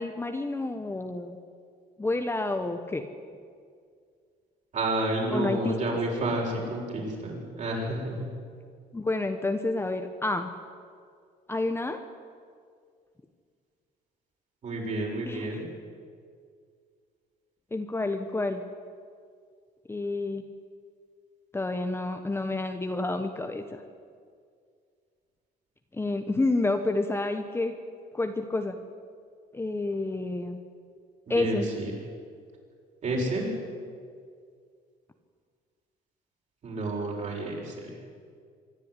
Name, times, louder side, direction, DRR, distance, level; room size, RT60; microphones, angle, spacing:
voice 1, 0.0-1.4 2.0-3.1 5.3-5.8 8.9-10.5 11.5-12.0 15.3-15.6 17.7-18.6 19.9-20.4 21.5-23.8 25.9-27.7 28.1-28.8 29.5-30.6 31.3-31.7, left 2 dB, 15° left, 6 dB, 1.2 m, -29 dB
voice 2, 4.7-8.3 14.6-15.7 31.3-31.9 33.0-33.5 36.6-38.0, right 2 dB, 45° right, -1 dB, 6.9 m, -30 dB
25.0 x 11.5 x 9.9 m, 2.1 s
cardioid pair, 110°, 17 cm